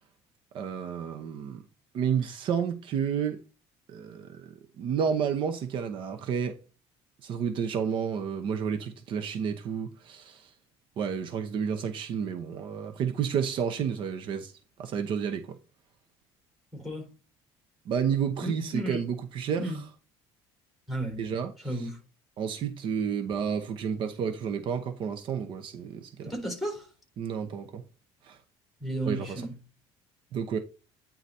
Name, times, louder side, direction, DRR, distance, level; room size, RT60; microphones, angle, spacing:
voice 1, 0.5-1.6 1.9-3.4 3.9-6.6 7.2-10.5 11.0-14.5 14.8-15.6 17.9-19.6 21.2-21.9 22.4-26.3 27.2-27.8 28.2-28.4 29.1-29.4 30.3-30.6, right 7 dB, 50° right, 0.9 m, -31 dB
voice 2, 16.7-17.1 18.4-19.0 19.6-19.8 20.9-21.3 21.6-22.0 26.2-26.9 28.8-29.5, right 1 dB, ahead, 3.9 m, -33 dB
9.6 x 4.0 x 4.2 m
cardioid pair, 150°, 11 cm